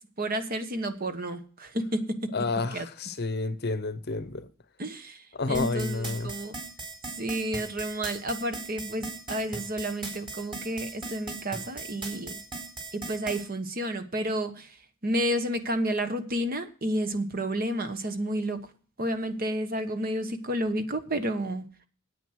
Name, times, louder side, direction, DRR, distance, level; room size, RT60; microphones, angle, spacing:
voice 1, 0.2-2.4 2.7-2.9 4.8-6.5 7.2-12.4 12.9-14.7 15.0-18.6 19.0-21.6, right 1 dB, 40° right, 1.2 m, -31 dB
voice 2, 2.3-4.5 5.3-6.3, left 3 dB, 45° left, 0.8 m, -30 dB
sound 1, 5.5-13.4, right 3 dB, 25° right, 3.8 m, -38 dB
9.3 x 9.0 x 6.3 m
head